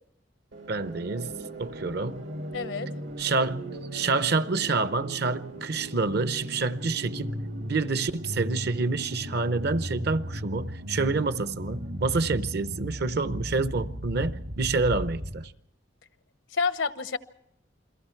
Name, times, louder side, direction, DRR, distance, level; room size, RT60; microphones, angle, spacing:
sound 1, 0.5-15.5, equal, 85° right, 2.1 m, -37 dB
voice 1, 0.7-1.3 1.6-2.3 3.2-7.4 7.7-15.5, right 3 dB, 60° right, 0.7 m, -28 dB
voice 2, 2.5-2.9 16.5-17.2, left 4 dB, 85° left, 1.0 m, -28 dB
29.0 x 22.5 x 4.5 m
head